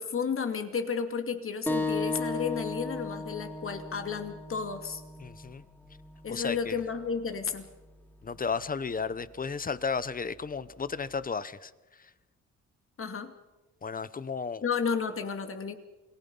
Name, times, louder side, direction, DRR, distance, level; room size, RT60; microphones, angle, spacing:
voice 1, 0.0-5.0 6.2-7.7 13.0-13.3 14.6-15.7, left 6 dB, 45° left, 2.5 m, -32 dB
sound 1, 1.7-6.8, left 3 dB, 5° left, 2.7 m, -35 dB
voice 2, 5.2-5.6 6.3-6.8 8.2-11.7 13.8-14.6, left 5 dB, 30° left, 1.0 m, -33 dB
28.5 x 19.5 x 5.6 m
cardioid pair, 90°, 30 cm